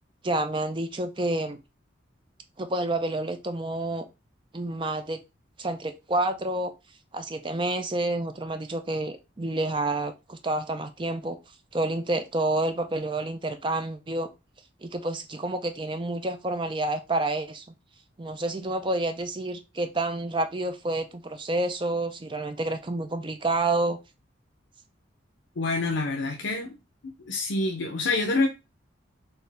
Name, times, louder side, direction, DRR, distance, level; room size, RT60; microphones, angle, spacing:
voice 1, 0.2-1.6 2.6-4.1 4.5-5.2 5.6-6.7 7.1-11.4 11.7-14.3 14.8-17.6 18.2-24.0, right 2 dB, 25° right, 0.5 m, -29 dB
voice 2, 25.6-26.8 27.0-28.5, left 3 dB, 75° left, 0.6 m, -27 dB
4.4 x 2.7 x 3.3 m
head